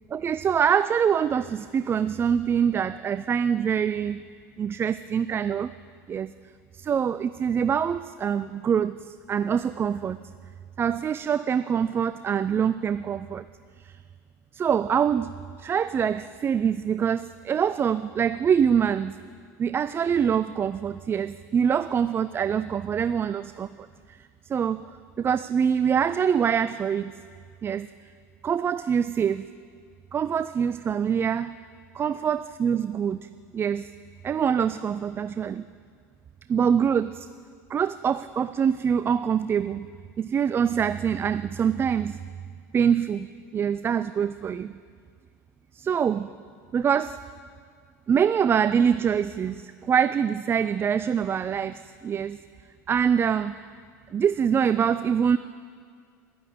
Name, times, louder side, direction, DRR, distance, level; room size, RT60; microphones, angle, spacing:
voice 1, 0.1-4.2 4.6-5.7 6.1-6.3 6.7-10.2 10.8-13.4 13.8-13.9 14.5-15.3 15.6-19.2 19.6-23.9 24.5-24.9 25.2-27.1 27.6-27.9 28.4-29.4 30.1-31.6 31.9-33.3 33.5-33.9 34.2-35.6 36.5-37.3 37.7-39.9 40.2-42.2 42.7-43.3 43.5-44.7 45.7-46.3 46.7-47.2 48.1-52.4 52.9-53.7 54.1-55.4, right 7 dB, 25° right, 14 dB, 0.3 m, -24 dB
11.5 x 10.0 x 8.6 m, 2.1 s
hypercardioid pair, 90°, 9 cm